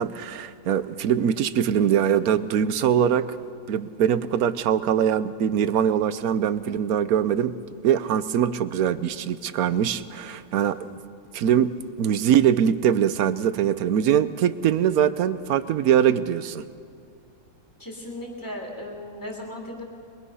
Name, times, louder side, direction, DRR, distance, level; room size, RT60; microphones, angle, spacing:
voice 1, 0.0-3.4 3.7-7.5 7.8-10.9 11.3-11.7 12.0-16.7, right 9 dB, 65° right, 14 dB, 1.1 m, -22 dB
voice 2, 17.8-19.8, left 1 dB, 10° left, -2 dB, 2.8 m, -36 dB
22.5 x 22.5 x 5.6 m, 2.2 s
omnidirectional pair, 1.8 m